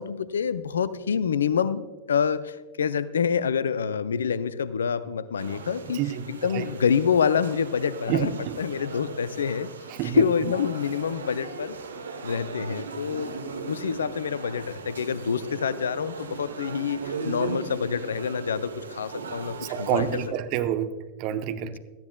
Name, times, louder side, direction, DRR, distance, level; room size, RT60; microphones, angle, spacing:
voice 1, 0.0-6.0 6.3-8.3 8.6-9.7 10.0-11.8 12.2-13.3 13.7-20.2 21.6-21.8, left 6 dB, 70° left, 17 dB, 0.5 m, -27 dB
sound 1, 5.4-20.3, right 4 dB, 70° right, 1.1 m, -38 dB
voice 2, 5.9-6.3 6.5-6.7 8.1-8.6 10.0-10.2 19.6-20.9 21.2-21.8, right 10 dB, 45° right, 9 dB, 0.9 m, -27 dB
17.5 x 13.5 x 2.3 m, 1.3 s
figure-of-eight pair, 90°, 0 cm